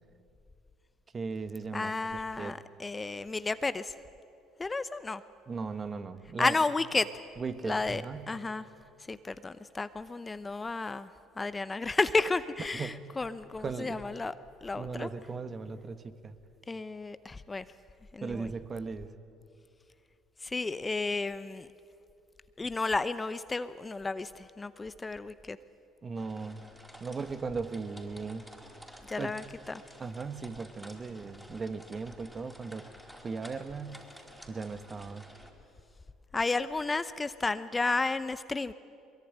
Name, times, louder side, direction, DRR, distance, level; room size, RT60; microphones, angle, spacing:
voice 1, 1.1-2.6 5.5-6.6 7.4-8.3 12.7-13.0 13.6-14.0 14.7-16.4 18.2-19.1 26.0-26.6 27.0-28.5 29.2-29.3 30.0-32.8 33.2-34.0 34.5-35.3, right 4 dB, 35° right, 11 dB, 1.6 m, -37 dB
voice 2, 1.7-3.9 4.6-5.2 6.4-7.2 7.6-8.6 9.1-11.1 11.4-14.3 14.6-15.1 16.7-17.6 18.1-18.5 20.4-21.7 22.6-25.6 29.1-29.8 36.3-38.7, left 3 dB, 20° left, 14 dB, 0.8 m, -32 dB
sound 1, 26.2-35.5, equal, 5° right, 4.5 m, -52 dB
22.5 x 22.0 x 10.0 m, 2.6 s
hypercardioid pair, 65°, 0 cm